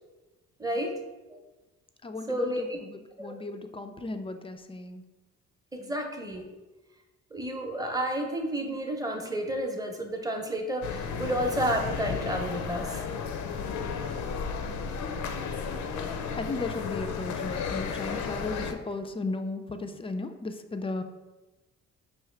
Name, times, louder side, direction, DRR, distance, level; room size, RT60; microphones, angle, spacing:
voice 1, 0.6-1.0 1.3-1.4 2.3-2.8 3.2-3.3 5.7-6.5 7.3-13.0 15.2-15.3, right 1 dB, 10° right, 3 dB, 0.7 m, -31 dB
voice 2, 2.0-5.0 5.8-5.9 14.6-14.9 16.4-21.0, left 3 dB, 20° left, 7 dB, 0.3 m, -36 dB
sound 1, 10.8-18.7, left 6 dB, 70° left, 0.5 m, -33 dB
4.8 x 2.8 x 3.2 m, 1.1 s
cardioid pair, 90°, 30 cm